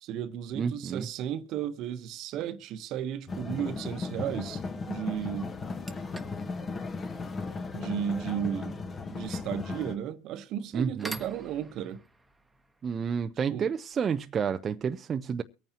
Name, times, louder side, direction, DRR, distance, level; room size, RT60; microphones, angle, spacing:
voice 1, 0.0-5.5 7.7-8.8 9.1-12.0 13.5-13.7, right 9 dB, 55° right, 1.0 m, -34 dB
voice 2, 0.5-1.1 10.7-11.2 12.8-15.4, right 6 dB, 30° right, 0.5 m, -30 dB
sound 1, 3.3-10.0, left 4 dB, 25° left, 1.2 m, -36 dB
sound 2, 5.4-14.2, right 2 dB, 10° right, 1.2 m, -49 dB
23.5 x 9.1 x 2.9 m
supercardioid pair, 105°, 0 cm